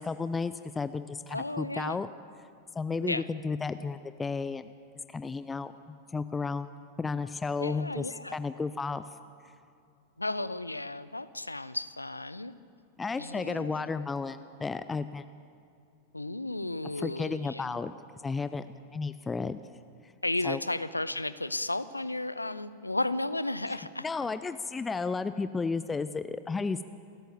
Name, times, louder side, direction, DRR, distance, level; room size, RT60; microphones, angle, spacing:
voice 1, 0.0-2.1 2.7-4.7 5.1-6.7 7.0-9.0 13.0-15.3 17.0-17.9 18.2-19.6 20.0-20.1 20.4-20.6 24.0-26.8, left 4 dB, 15° left, 13 dB, 0.6 m, -33 dB
voice 2, 1.3-2.0 3.0-3.2 7.6-8.4 10.2-12.5 13.2-13.9 16.1-17.8 20.2-24.1, left 2 dB, 85° left, 16 dB, 0.7 m, -34 dB
27.5 x 13.5 x 7.1 m, 2.4 s
figure-of-eight pair, 90°, 0 cm